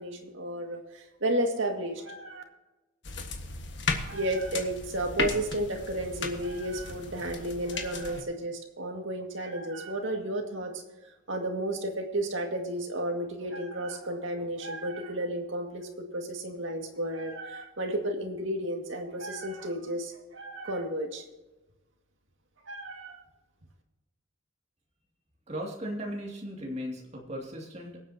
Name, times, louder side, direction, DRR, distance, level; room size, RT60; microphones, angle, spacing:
voice 1, 0.0-2.4 4.0-10.8 11.3-21.2 22.7-23.2, right 1 dB, 70° right, 3 dB, 2.0 m, -33 dB
sound 1, 3.0-8.2, left 4 dB, 60° left, 1.6 m, -35 dB
voice 2, 25.5-28.0, equal, 30° right, -1 dB, 2.4 m, -37 dB
24.0 x 8.4 x 2.9 m, 1.1 s
head